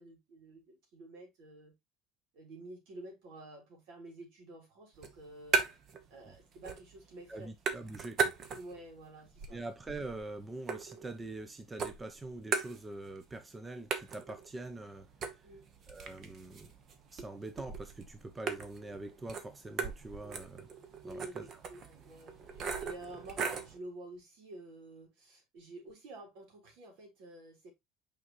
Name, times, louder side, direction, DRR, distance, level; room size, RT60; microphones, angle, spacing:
voice 1, 0.0-1.7 2.3-5.6 6.1-7.5 8.5-9.6 15.4-15.6 20.2-20.4 21.0-27.7, right 1 dB, 70° right, 3.6 m, -50 dB
sound 1, 5.0-6.0 6.3-7.0 7.3-8.9 9.3-11.4 11.8-13.2 13.5-13.6 13.9-23.8, right 5 dB, 40° right, 1.1 m, -38 dB
voice 2, 7.3-8.3 9.5-15.1 15.9-16.7 17.1-20.7 21.0-21.6, right 2 dB, 15° right, 0.6 m, -44 dB
6.2 x 5.1 x 3.0 m
cardioid pair, 150°, 0 cm